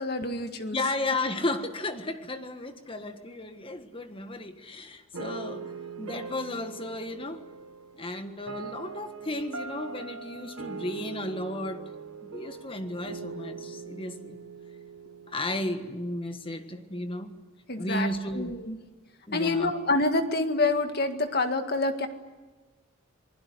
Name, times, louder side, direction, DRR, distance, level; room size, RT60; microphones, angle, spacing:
voice 1, 0.0-0.8 17.7-18.8 19.3-22.1, left 2 dB, 50° left, 7 dB, 2.0 m, -27 dB
voice 2, 0.7-7.4 7.9-11.9 12.2-14.4 15.3-17.4 17.8-18.6 19.3-19.7, left 1 dB, 25° left, 8 dB, 1.6 m, -34 dB
sound 1, 5.1-16.2, right 4 dB, 80° right, 1.4 m, -41 dB
28.0 x 20.0 x 9.7 m, 1.2 s
head